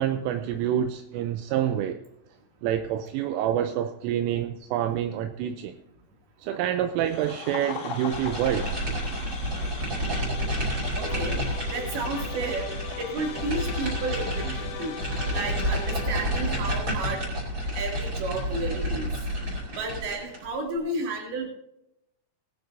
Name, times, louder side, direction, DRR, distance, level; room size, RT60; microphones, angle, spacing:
voice 1, 0.0-2.0 2.6-5.7 6.4-8.7 12.3-12.5 14.4-14.5, right 10 dB, 85° right, 7 dB, 3.2 m, -27 dB
sound 1, 7.0-16.1, left 5 dB, 55° left, 3.9 m, -42 dB
sound 2, 8.1-20.5, equal, 25° right, 4.4 m, -30 dB
sound 3, 10.0-16.9, left 9 dB, 85° left, 2.2 m, -41 dB
voice 2, 10.9-11.4 11.7-12.7 13.0-15.0 15.3-17.2 17.7-19.1 19.7-21.5, right 2 dB, 55° right, 1 dB, 4.2 m, -32 dB
19.0 x 12.5 x 2.7 m, 0.84 s
omnidirectional pair, 5.7 m